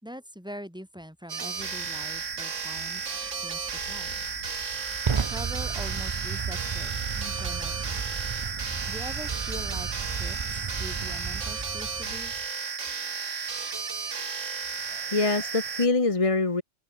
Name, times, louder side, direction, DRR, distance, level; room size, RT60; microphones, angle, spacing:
voice 1, 0.0-3.1 3.4-4.1 5.2-8.0 8.9-12.3, equal, 5° right, 4.0 m, -43 dB
sound 1, 1.3-15.9, right 5 dB, 75° right, 2.2 m, -33 dB
sound 2, 1.6-12.2, left 2 dB, 70° left, 4.7 m, -50 dB
Fire, 3.5-12.5, right 5 dB, 35° right, 0.5 m, -34 dB
voice 2, 14.8-16.6, left 3 dB, 25° left, 1.3 m, -25 dB
omnidirectional pair, 1.3 m